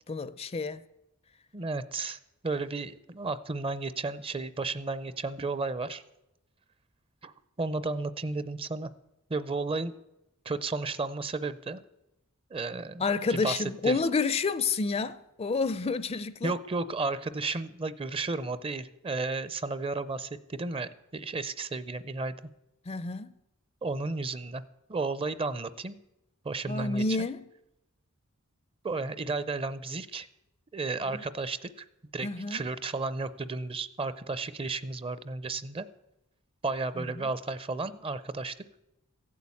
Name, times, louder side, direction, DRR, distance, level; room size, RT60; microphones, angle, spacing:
voice 1, 0.1-0.8 13.0-16.5 22.9-23.3 26.7-27.4 31.1-31.2 32.2-32.6 37.0-37.3, left 4 dB, 30° left, 0.5 m, -29 dB
voice 2, 1.5-2.2 2.4-6.0 7.2-8.9 9.3-9.9 10.5-11.8 12.5-13.0 13.3-14.0 16.4-22.3 23.8-24.6 24.9-26.0 26.4-27.3 28.8-30.3 30.7-31.8 32.1-35.9 36.6-38.5, right 3 dB, 25° right, 0.6 m, -33 dB
15.0 x 8.5 x 8.4 m
head